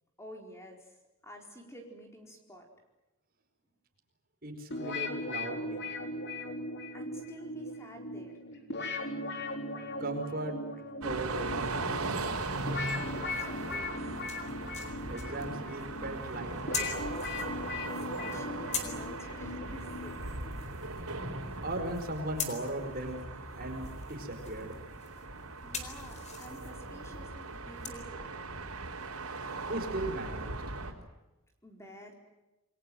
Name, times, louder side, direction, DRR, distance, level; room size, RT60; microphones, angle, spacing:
voice 1, 0.2-0.9 1.2-2.7 6.9-8.4 12.9-14.0 17.9-20.4 25.6-28.4 31.6-32.1, equal, 15° left, 2 dB, 4.4 m, -49 dB
voice 2, 4.4-5.8 10.0-10.6 11.0-12.1 15.1-17.2 21.6-23.2 23.6-24.7 29.7-30.5, right 1 dB, 40° right, 5 dB, 4.9 m, -37 dB
sound 1, 4.7-20.6, left 2 dB, 50° left, 4.1 m, -39 dB
sound 2, 11.0-30.9, right 2 dB, 80° right, 4.1 m, -39 dB
sound 3, 12.1-27.9, left 5 dB, 30° left, 4.1 m, -45 dB
28.5 x 22.5 x 7.8 m, 1.0 s
head